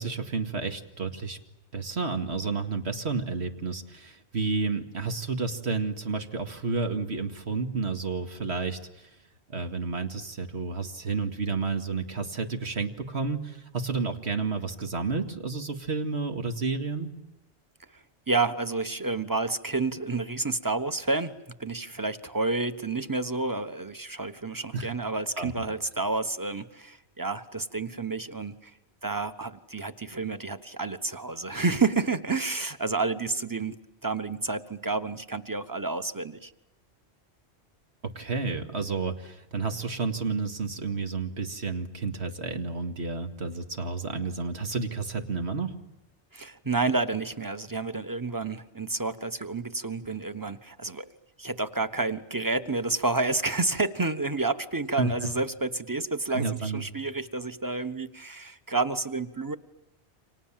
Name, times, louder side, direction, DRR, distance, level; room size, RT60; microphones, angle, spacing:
voice 1, 0.0-1.4 1.7-9.1 9.5-17.1 24.7-24.9 25.4-25.5 38.2-45.7 55.0-55.1 56.3-56.8, right 4 dB, 75° right, 6 dB, 2.4 m, -31 dB
voice 2, 18.3-21.3 21.6-28.7 29.0-36.5 46.3-51.1 51.4-59.6, right 3 dB, 20° right, 11 dB, 1.2 m, -30 dB
29.5 x 26.5 x 7.5 m, 0.97 s
omnidirectional pair, 1.1 m